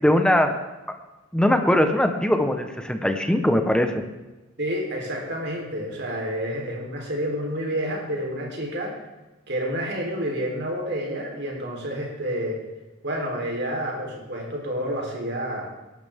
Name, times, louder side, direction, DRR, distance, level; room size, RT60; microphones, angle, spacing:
voice 1, 0.0-0.6 0.9-1.0 1.3-4.0, left 1 dB, 5° left, 6 dB, 1.0 m, -21 dB
voice 2, 4.6-9.0 9.5-12.6 13.0-15.7, equal, 60° right, -1 dB, 3.8 m, -29 dB
17.5 x 11.5 x 3.7 m, 1.1 s
head